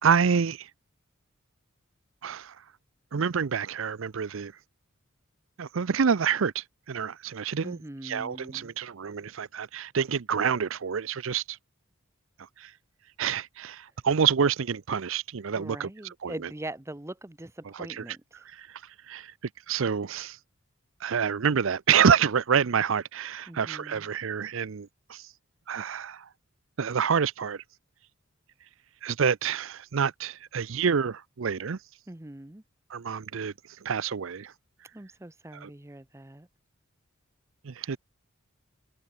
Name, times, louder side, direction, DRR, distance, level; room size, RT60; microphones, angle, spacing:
voice 1, 0.0-0.7 2.2-2.6 3.1-4.5 5.6-11.6 12.6-12.7 13.2-16.3 17.7-18.2 18.4-18.8 19.1-19.3 19.7-20.4 21.0-25.3 25.7-26.3 26.8-27.6 29.0-31.8 32.9-33.5 33.8-34.5 35.5-35.7 37.6-38.0, right 6 dB, 65° right, 0.6 m, -27 dB
voice 2, 7.6-8.7 15.5-18.2 23.5-24.1 32.1-32.6 34.9-36.5, right 1 dB, 15° right, 0.8 m, -42 dB
head